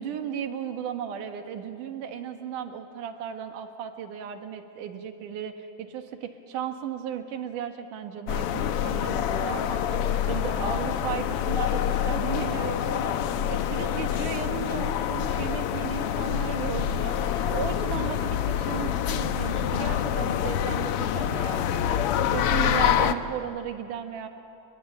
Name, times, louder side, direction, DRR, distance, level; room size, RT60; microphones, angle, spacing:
voice 1, 0.0-10.0 10.3-13.2 13.5-17.2 17.5-24.3, right 8 dB, 80° right, 6 dB, 3.1 m, -35 dB
sound 1, 8.3-23.1, left 10 dB, 75° left, 1.3 m, -26 dB
29.5 x 22.0 x 9.1 m, 2.7 s
omnidirectional pair, 3.6 m